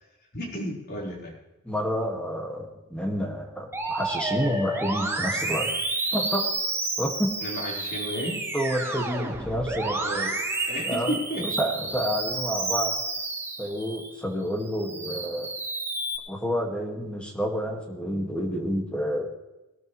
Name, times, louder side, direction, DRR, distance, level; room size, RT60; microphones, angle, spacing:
voice 1, 0.3-1.3 7.4-8.4 10.0-10.3 10.7-11.4, equal, 50° left, -4 dB, 4.7 m, -32 dB
voice 2, 1.7-5.7 6.1-6.5 7.0-7.3 8.5-10.0 10.8-11.1 11.4-12.9 13.6-15.5 16.3-19.3, equal, 5° left, 1 dB, 2.1 m, -29 dB
Musical instrument, 3.7-14.1 14.6-16.2, right 2 dB, 10° right, 1.6 m, -30 dB
20.5 x 13.0 x 3.3 m, 1.0 s
head